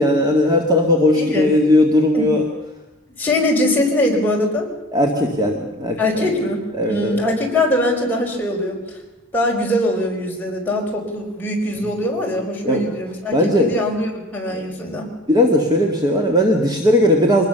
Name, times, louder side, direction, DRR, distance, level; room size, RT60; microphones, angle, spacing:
voice 1, 0.0-2.5 4.9-6.3 6.7-7.2 11.8-11.9 12.7-12.9 13.3-13.7 14.5-14.7 15.3-17.4, left 1 dB, 20° right, 1 dB, 2.0 m, -17 dB
voice 2, 3.2-4.7 6.0-6.6 6.9-8.8 9.3-15.1, left 1 dB, 10° left, -2 dB, 5.1 m, -21 dB
24.0 x 20.0 x 6.9 m, 1.0 s
head